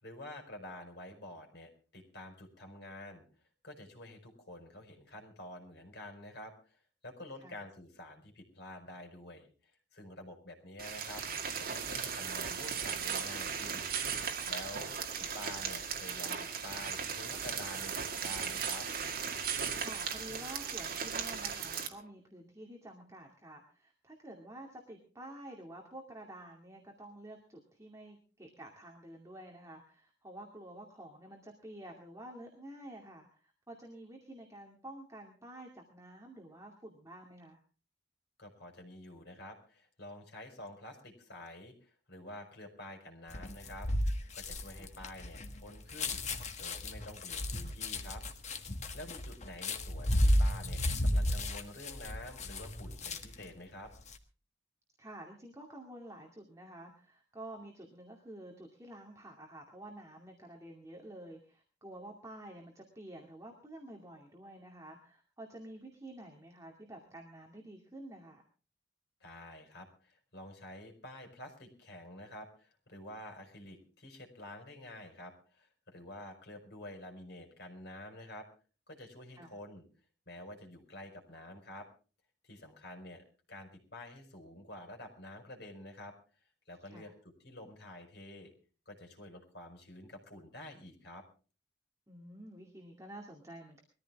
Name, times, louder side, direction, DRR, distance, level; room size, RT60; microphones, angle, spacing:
voice 1, 0.0-3.2 3.6-6.8 7.0-9.5 9.9-11.2 11.6-13.9 14.5-14.9 15.2-18.9 38.4-43.9 44.3-48.2 48.9-53.9 69.2-78.5 78.9-79.8 80.3-81.9 82.4-86.1 86.7-88.5 88.9-91.2, left 1 dB, 60° left, 4 dB, 4.8 m, -49 dB
sound 1, 10.8-21.9, right 6 dB, 50° right, 2.1 m, -37 dB
voice 2, 19.7-37.6 44.7-44.9 55.0-68.4 79.4-79.5 86.9-87.1 92.1-93.8, right 1 dB, 15° right, 0 dB, 2.3 m, -50 dB
sound 2, 43.3-53.5 53.9-54.2, left 1 dB, 40° left, 1.5 m, -33 dB
22.0 x 14.0 x 3.5 m, 0.37 s
head